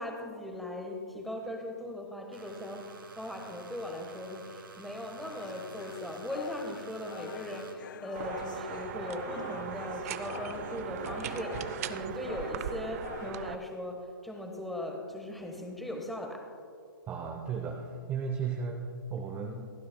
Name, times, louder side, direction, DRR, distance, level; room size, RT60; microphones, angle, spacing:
voice 1, 0.0-16.4, left 1 dB, ahead, 2 dB, 1.2 m, -39 dB
sound 1, 2.3-7.7, right 5 dB, 75° right, 1.9 m, -50 dB
sound 2, 5.3-13.3, left 9 dB, 60° left, 0.4 m, -46 dB
sound 3, 8.1-13.5, right 10 dB, 40° right, 0.5 m, -38 dB
voice 2, 17.1-19.7, right 5 dB, 15° right, 3 dB, 0.8 m, -35 dB
27.0 x 9.3 x 2.2 m, 2.3 s
hypercardioid pair, 135°, 12 cm